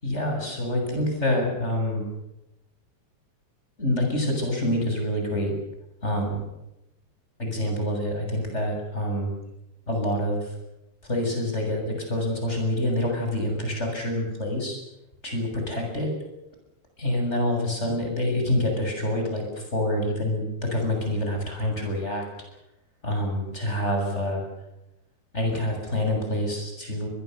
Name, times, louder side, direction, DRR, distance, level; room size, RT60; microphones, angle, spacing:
voice 1, 0.0-2.0 3.8-5.5 6.0-6.4 7.4-9.3 9.9-10.4 11.1-14.8 15.2-16.1 17.0-19.4 19.7-22.2 23.0-24.4 25.3-27.1, left 1 dB, 15° left, 2 dB, 7.2 m, -26 dB
24.0 x 21.5 x 6.9 m, 0.89 s
omnidirectional pair, 5.3 m